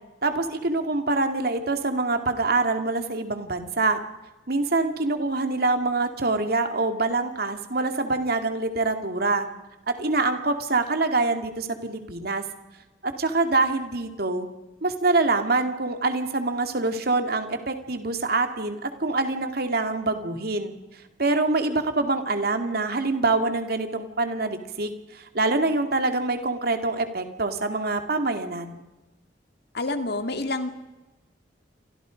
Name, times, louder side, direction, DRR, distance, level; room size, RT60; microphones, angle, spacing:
voice 1, 0.2-4.0 4.5-9.5 10.0-12.4 13.0-14.5 14.8-20.7 21.2-28.8, right 3 dB, 60° right, 7 dB, 2.5 m, -25 dB
voice 2, 29.7-30.7, left 2 dB, 65° left, 7 dB, 2.3 m, -28 dB
28.5 x 24.5 x 5.3 m, 1.1 s
head